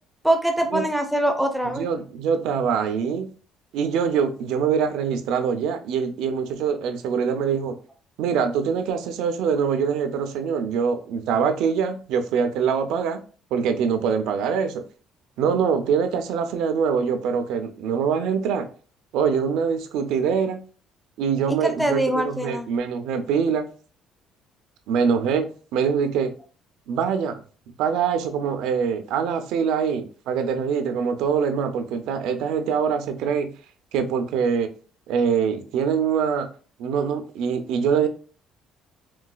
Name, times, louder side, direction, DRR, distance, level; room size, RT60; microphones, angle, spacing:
voice 1, 0.2-1.9 21.6-22.7, right 1 dB, ahead, 0.4 m, -23 dB
voice 2, 1.6-3.3 3.7-7.8 8.2-13.2 13.5-14.8 15.4-18.7 19.1-20.6 21.2-23.7 24.9-26.3 26.9-27.4 27.8-33.5 33.9-34.7 35.1-36.5 36.8-38.1, right 6 dB, 80° right, 0.4 m, -24 dB
3.9 x 2.2 x 2.3 m
cardioid pair, 135°, 0 cm